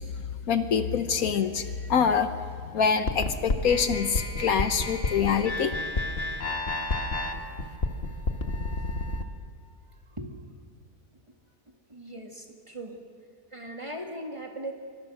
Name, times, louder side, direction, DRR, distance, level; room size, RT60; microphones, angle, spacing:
voice 1, 0.5-2.3 2.7-5.7 7.2-7.3, left 6 dB, 70° left, 9 dB, 1.4 m, -25 dB
voice 2, 1.6-2.0 10.1-10.4 11.9-13.0 13.5-14.7, right 1 dB, 20° right, 2 dB, 2.4 m, -39 dB
sound 1, 3.1-9.2, left 2 dB, 40° left, 1.8 m, -30 dB
26.0 x 24.5 x 6.4 m, 2.1 s
omnidirectional pair, 1.6 m